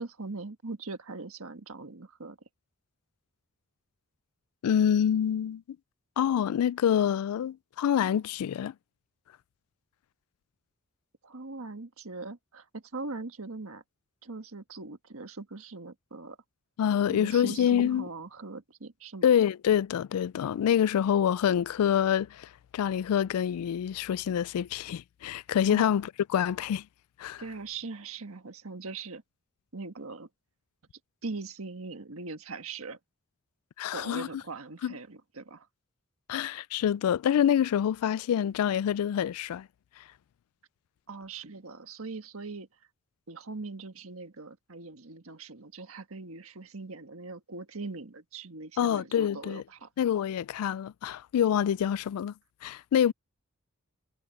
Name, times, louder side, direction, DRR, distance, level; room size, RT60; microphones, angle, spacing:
voice 1, 0.0-2.4 11.2-13.8 14.2-16.4 17.1-19.3 25.7-25.8 27.4-29.2 29.7-30.3 31.2-33.0 33.9-35.7 41.1-42.7 43.3-49.9, right 3 dB, 70° right, 1.5 m, -41 dB
voice 2, 4.6-5.6 6.2-8.7 16.8-18.1 19.2-26.9 27.2-27.4 33.8-34.3 34.8-34.9 36.3-39.7 48.8-49.6 50.0-52.3 52.6-53.1, left 9 dB, 85° left, 0.3 m, -26 dB
head